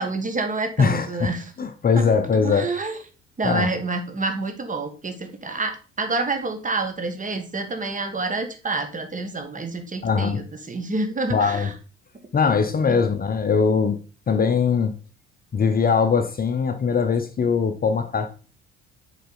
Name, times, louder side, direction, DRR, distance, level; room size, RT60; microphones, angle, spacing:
voice 1, 0.0-1.5 1.9-2.1 2.4-3.0 3.4-11.7 12.9-13.0, right 3 dB, 25° right, 1.3 m, -28 dB
voice 2, 0.8-1.3 1.6-2.7 3.4-3.7 10.0-10.4 11.3-11.7 12.3-14.0 14.3-14.9 15.5-18.3, left 5 dB, 30° left, 0.7 m, -21 dB
6.6 x 4.2 x 3.9 m
figure-of-eight pair, 55°, 32 cm